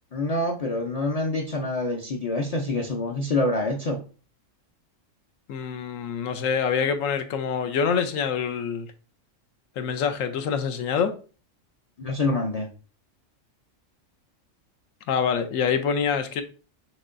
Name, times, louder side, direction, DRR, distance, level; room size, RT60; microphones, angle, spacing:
voice 1, 0.1-4.0 12.0-12.7, left 2 dB, 45° left, 0.5 m, -26 dB
voice 2, 5.5-8.9 9.8-11.1 15.1-16.4, left 6 dB, 85° left, 1.0 m, -25 dB
6.3 x 3.0 x 2.5 m
omnidirectional pair, 1.3 m